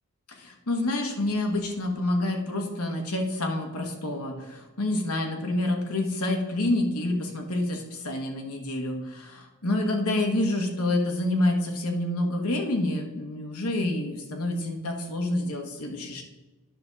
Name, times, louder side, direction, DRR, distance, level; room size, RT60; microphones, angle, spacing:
voice 1, 0.3-16.2, left 1 dB, 90° left, 2 dB, 1.4 m, -28 dB
9.8 x 6.1 x 4.0 m, 1.2 s
head